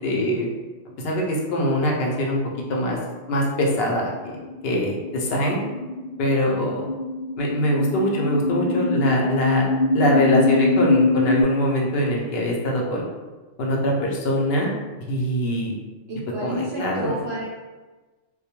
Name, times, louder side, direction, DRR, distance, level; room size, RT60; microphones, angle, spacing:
voice 1, 0.0-0.5 1.0-2.4 2.7-3.0 3.3-4.4 4.6-5.6 6.2-6.8 7.4-9.7 9.9-13.0 13.6-14.7 15.1-15.7 16.4-17.2, left 1 dB, 65° left, -2 dB, 0.7 m, -23 dB
sound 1, 3.0-11.4, left 2 dB, 80° left, 1.1 m, -24 dB
voice 2, 16.1-17.5, equal, 65° right, -4 dB, 0.7 m, -30 dB
2.3 x 2.1 x 2.8 m, 1.2 s
omnidirectional pair, 1.4 m